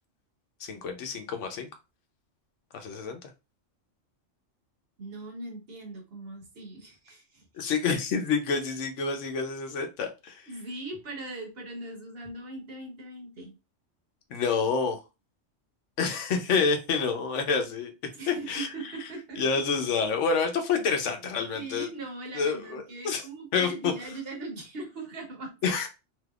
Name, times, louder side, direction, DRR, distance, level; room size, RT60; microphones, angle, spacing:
voice 1, 0.6-1.7 2.7-3.2 7.6-10.4 14.3-15.0 16.0-17.9 18.3-18.7 19.4-21.9 22.3-23.2 23.5-23.9 25.6-25.9, left 5 dB, 75° left, 6 dB, 1.0 m, -28 dB
voice 2, 5.0-7.5 10.5-13.5 18.1-19.4 21.5-25.5, right 2 dB, 55° right, 2 dB, 1.1 m, -40 dB
3.4 x 2.9 x 2.3 m, 0.27 s
omnidirectional pair, 1.3 m